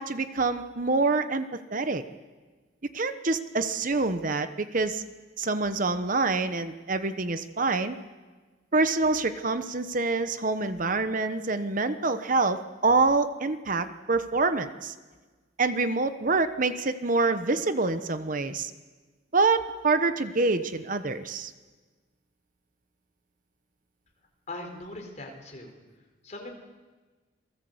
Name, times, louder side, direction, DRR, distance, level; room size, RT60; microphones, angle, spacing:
voice 1, 0.0-2.0 2.9-5.0 5.4-8.0 8.7-14.9 15.6-18.7 19.3-21.5, right 3 dB, 45° right, 10 dB, 1.1 m, -26 dB
voice 2, 24.5-25.8 26.2-26.6, left 2 dB, 40° left, 3 dB, 4.3 m, -40 dB
27.5 x 18.5 x 8.0 m, 1.3 s
head